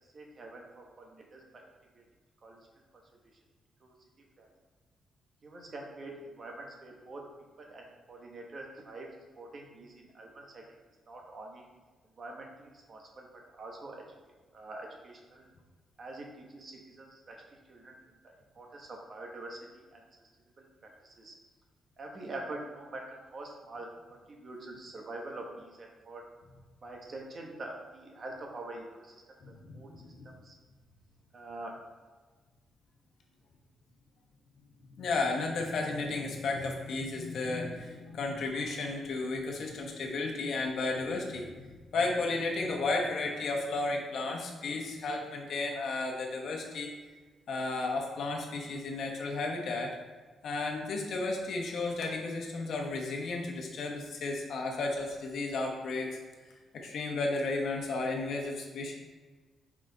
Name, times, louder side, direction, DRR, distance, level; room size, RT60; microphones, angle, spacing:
voice 1, 0.1-1.7 1.9-2.0 2.4-2.7 3.8-3.9 4.4-4.5 5.4-7.2 7.6-9.1 9.4-10.6 11.1-11.6 12.2-14.0 14.5-15.5 16.0-17.4 17.7-18.0 18.5-20.3 20.6-20.7 21.0-21.3 22.0-26.3 26.8-29.1 29.5-30.6 31.3-31.8, right 2 dB, 35° right, 0 dB, 1.2 m, -45 dB
voice 2, 29.4-30.3 35.0-46.9 47.5-50.0 50.4-56.1 56.7-58.9, left 3 dB, 60° left, 1 dB, 1.2 m, -33 dB
6.1 x 5.0 x 3.9 m, 1.4 s
cardioid pair, 155°, 0 cm